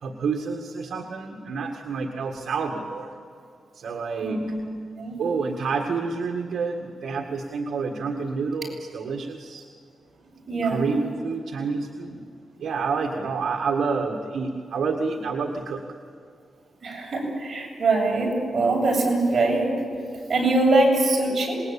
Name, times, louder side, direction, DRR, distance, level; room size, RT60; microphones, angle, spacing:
voice 1, 0.0-3.2 3.7-4.4 5.2-9.7 10.6-12.2 12.6-15.8, right 4 dB, 65° right, 2 dB, 1.9 m, -28 dB
voice 2, 4.2-4.6 5.0-5.2 10.5-10.9 16.8-19.7 20.3-21.6, right 2 dB, 30° right, -3 dB, 7.9 m, -22 dB
26.5 x 20.5 x 8.8 m, 2.3 s
wide cardioid pair, 170°, 0 cm